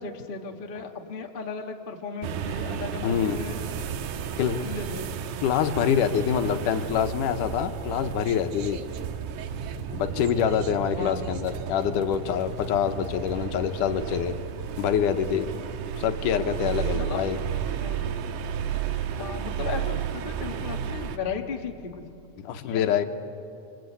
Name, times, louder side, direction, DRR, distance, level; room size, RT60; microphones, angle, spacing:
voice 1, 0.0-3.6 4.1-5.1 10.9-11.3 16.9-17.2 17.8-18.1 19.2-22.0 22.6-23.0, left 5 dB, 45° left, 3 dB, 0.6 m, -36 dB
sound 1, 2.2-21.2, right 8 dB, 85° right, 2.6 m, -33 dB
voice 2, 3.0-3.4 4.4-4.6 5.4-8.8 9.9-14.4 14.8-15.6 16.0-17.4 22.4-23.0, left 8 dB, 90° left, 8 dB, 2.6 m, -25 dB
26.0 x 25.5 x 8.4 m, 2.8 s
omnidirectional pair, 3.6 m